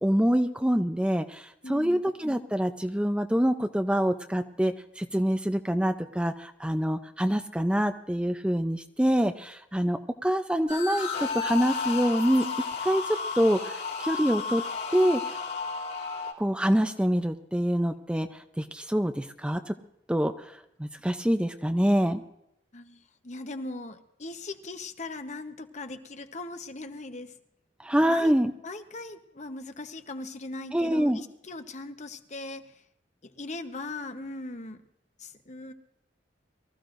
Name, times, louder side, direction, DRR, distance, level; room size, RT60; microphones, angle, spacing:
voice 1, 0.0-14.6 14.9-15.4 16.4-19.7 20.1-22.2 27.8-28.5 30.7-31.2, equal, 5° right, 7 dB, 0.5 m, -26 dB
voice 2, 1.6-2.0 22.7-27.3 28.1-28.3 28.6-32.8 33.2-34.8 35.2-35.7, left 2 dB, 40° left, 8 dB, 1.0 m, -39 dB
sound 1, 10.7-16.3, left 5 dB, 60° left, 3.1 m, -33 dB
24.0 x 14.5 x 2.6 m, 0.81 s
head